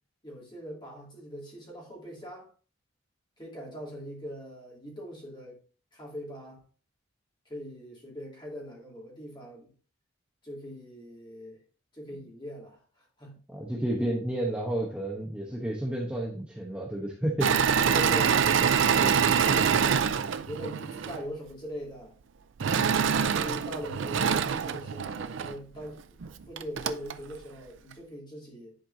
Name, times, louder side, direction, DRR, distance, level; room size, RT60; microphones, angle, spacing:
voice 1, 0.2-2.5 3.4-5.6 5.9-6.6 7.5-9.7 10.4-11.6 11.9-13.4 17.8-18.5 20.4-22.1 23.1-28.8, equal, 20° left, 2.6 m, -41 dB
voice 2, 13.5-17.5 18.9-19.6, right 1 dB, 5° right, 0.9 m, -31 dB
Engine / Mechanisms, 17.4-21.2 22.6-25.5 26.2-26.3 26.6-27.1, right 7 dB, 65° right, 0.4 m, -25 dB
10.5 x 4.5 x 2.7 m
head